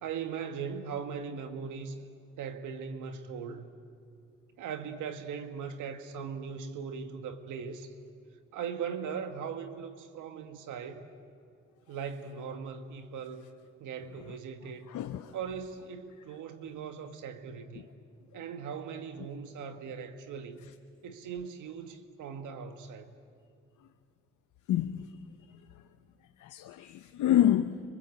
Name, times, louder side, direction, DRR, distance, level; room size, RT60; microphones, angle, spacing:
voice 1, 0.0-2.0 2.4-3.7 4.6-7.9 8.5-11.1 11.9-13.5 13.8-14.9 15.3-17.9 18.3-20.7 21.0-23.1, right 6 dB, 80° right, 1.6 m, -39 dB
voice 2, 14.9-15.4 17.8-17.9 24.7-25.2 26.4-27.8, left 12 dB, 75° left, 0.9 m, -28 dB
26.0 x 25.0 x 8.0 m
cardioid pair, 90°, 30 cm